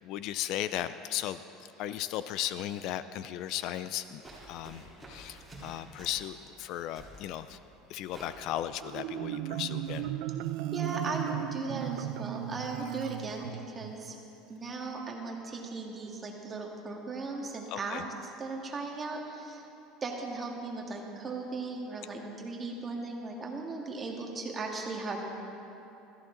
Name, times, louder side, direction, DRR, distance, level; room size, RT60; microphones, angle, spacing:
voice 1, 0.0-1.4 1.8-7.6 7.9-10.1 17.7-18.0, left 12 dB, 55° left, 13 dB, 0.4 m, -36 dB
sound 1, 4.0-10.0, right 1 dB, 5° right, 3.7 m, -51 dB
Marimba xylophone, 8.8-13.9, right 12 dB, 70° right, 0.5 m, -36 dB
voice 2, 10.7-14.2 14.5-18.0 18.4-19.6 20.0-25.2, right 3 dB, 20° right, 0 dB, 1.8 m, -37 dB
16.0 x 14.0 x 3.9 m, 2.9 s
supercardioid pair, 135°, 0 cm